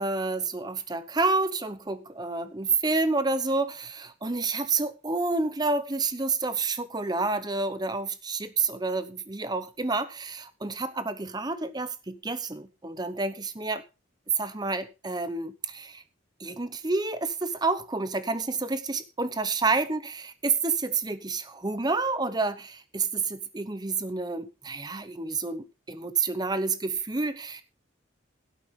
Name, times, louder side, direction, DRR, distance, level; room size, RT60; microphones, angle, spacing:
voice 1, 0.0-13.8 14.3-16.0 16.4-27.6, right 3 dB, 20° right, 0.8 m, -29 dB
16.5 x 8.5 x 3.7 m
head